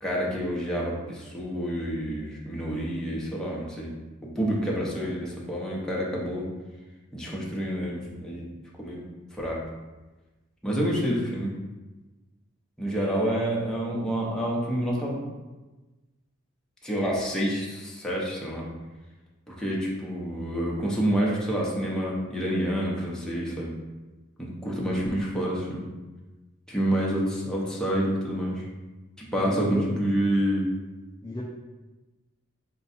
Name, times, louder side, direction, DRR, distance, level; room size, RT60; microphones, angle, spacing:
voice 1, 0.0-3.9 4.4-6.5 7.1-8.5 8.8-9.0 9.3-9.6 10.6-11.5 12.8-15.2 16.8-18.7 19.5-23.7 24.4-25.8 26.7-28.6 29.2-30.7, equal, 5° left, -4 dB, 0.7 m, -28 dB
voice 2, 29.3-30.0 31.2-31.4, left 1 dB, 20° left, -4 dB, 0.4 m, -34 dB
4.5 x 2.3 x 4.1 m, 1.2 s
head